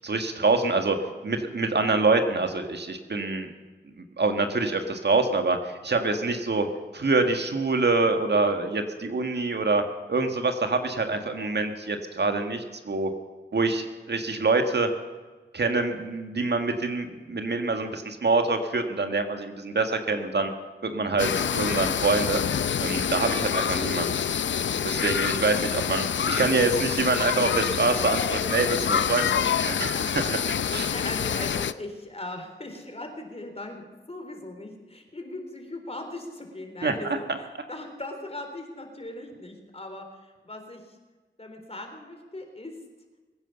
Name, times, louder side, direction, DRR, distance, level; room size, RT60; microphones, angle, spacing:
voice 1, 0.0-1.0 1.2-3.5 4.2-6.7 6.9-9.8 10.1-13.1 13.5-14.9 15.5-20.5 20.8-22.4 22.8-24.2 24.8-30.4 30.7-30.9 36.8-36.9, right 3 dB, 65° right, 6 dB, 1.7 m, -25 dB
sound 1, 21.2-31.7, left 8 dB, 80° left, 0.5 m, -27 dB
voice 2, 30.9-41.0 41.4-42.7, left 2 dB, 35° left, 4 dB, 3.9 m, -39 dB
22.0 x 9.7 x 6.9 m, 1.3 s
cardioid pair, 60°, 19 cm